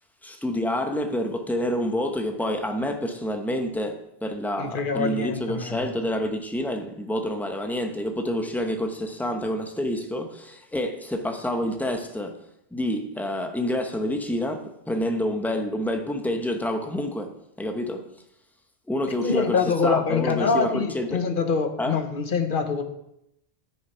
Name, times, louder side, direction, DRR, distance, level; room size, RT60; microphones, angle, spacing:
voice 1, 0.2-12.4 12.7-18.1 18.9-21.2 21.8-22.0, left 1 dB, ahead, 0.8 m, -28 dB
voice 2, 4.6-5.9 19.2-22.8, left 5 dB, 50° left, 1.1 m, -25 dB
10.0 x 6.7 x 5.6 m
omnidirectional pair, 1.1 m